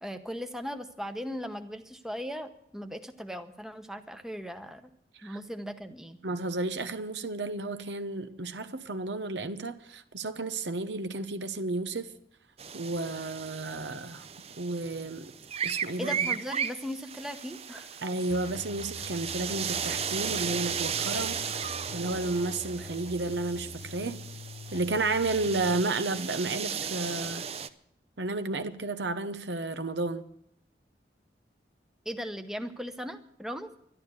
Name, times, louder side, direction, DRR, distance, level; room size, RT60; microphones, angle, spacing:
voice 1, 0.0-4.9 5.2-6.2 16.0-18.0 32.0-33.7, equal, 5° right, 0.8 m, -38 dB
voice 2, 6.2-12.1 12.7-14.3 14.6-15.3 15.6-16.2 18.0-24.2 24.7-27.4 28.2-30.2, right 2 dB, 85° right, 1.0 m, -32 dB
sound 1, 12.6-27.7, right 7 dB, 35° right, 0.6 m, -36 dB
sound 2, 18.3-25.8, left 4 dB, 60° left, 0.6 m, -45 dB
12.0 x 11.5 x 8.2 m
head